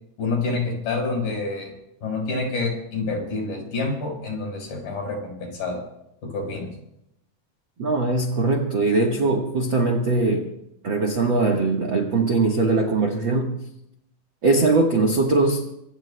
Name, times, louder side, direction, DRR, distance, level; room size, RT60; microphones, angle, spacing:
voice 1, 0.2-1.7 2.0-5.8 6.2-6.7, left 3 dB, 65° left, 1 dB, 6.4 m, -27 dB
voice 2, 7.8-10.5 10.8-13.6 14.4-15.6, right 3 dB, 60° right, 1 dB, 1.2 m, -21 dB
25.0 x 23.5 x 2.2 m, 0.81 s
omnidirectional pair, 4.3 m